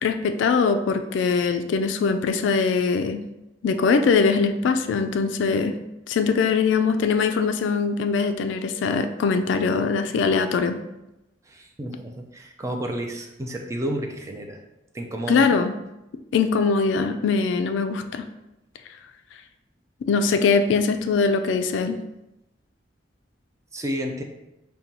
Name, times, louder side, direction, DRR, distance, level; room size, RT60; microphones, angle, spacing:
voice 1, 0.0-3.2 3.6-5.8 6.1-10.8 15.3-15.7 16.3-18.3 20.0-22.0, left 5 dB, 75° left, 8 dB, 0.3 m, -22 dB
voice 2, 11.5-14.6 14.9-15.5 23.7-24.2, right 1 dB, 15° right, 2 dB, 0.4 m, -31 dB
5.1 x 2.2 x 2.9 m, 0.93 s
head